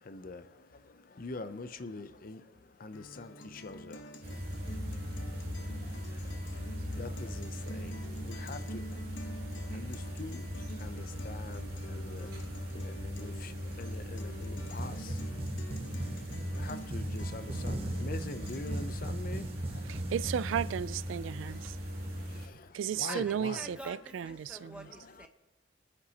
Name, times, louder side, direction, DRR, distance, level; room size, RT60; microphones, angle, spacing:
voice 1, 0.1-0.5 0.8-2.4 2.8-4.8 5.1-9.0 9.6-15.2 15.5-20.0 21.2-23.5, left 3 dB, 45° left, 0.5 m, -45 dB
Guitar, 2.9-18.9, equal, 75° left, 0.9 m, -48 dB
sound 1, 4.2-22.5, equal, 50° right, 2.4 m, -39 dB
sound 2, 14.6-20.9, right 2 dB, 30° right, 0.7 m, -39 dB
voice 2, 19.9-21.8 22.7-24.9, right 8 dB, 80° right, 0.3 m, -34 dB
voice 3, 23.1-25.3, right 1 dB, 5° right, 1.0 m, -47 dB
25.5 x 9.7 x 2.8 m
head